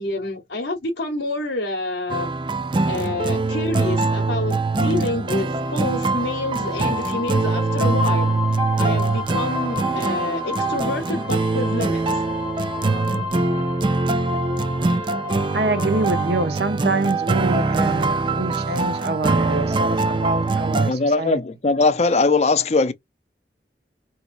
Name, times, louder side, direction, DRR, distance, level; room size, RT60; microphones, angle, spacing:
voice 1, 0.0-2.3 2.9-8.3 8.8-12.2, left 2 dB, 80° left, 0.9 m, -28 dB
sound 1, 2.1-20.9, right 3 dB, 25° right, 0.4 m, -23 dB
sound 2, 5.6-16.5, left 6 dB, 10° right, 0.7 m, -33 dB
voice 2, 15.5-21.4, right 2 dB, 60° right, 0.8 m, -25 dB
voice 3, 20.9-22.9, left 3 dB, 35° left, 0.5 m, -19 dB
4.8 x 2.9 x 2.5 m
head